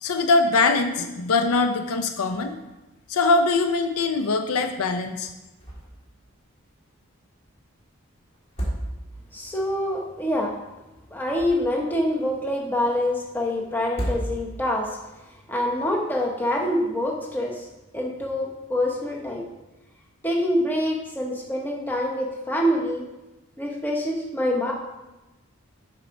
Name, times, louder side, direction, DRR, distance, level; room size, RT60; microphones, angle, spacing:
voice 1, 0.0-2.6 3.1-5.3, left 3 dB, 80° left, 7 dB, 0.5 m, -22 dB
sound 1, 5.6-6.1 6.4-6.5 8.3-9.4 11.1-12.0 13.8-14.8, right 1 dB, 30° left, 1.8 m, -32 dB
voice 2, 9.3-10.6 11.1-15.0 15.5-17.7 17.9-19.4 20.2-23.0 23.6-24.7, left 1 dB, 10° left, -1 dB, 0.9 m, -25 dB
7.1 x 4.5 x 5.2 m, 1.0 s
head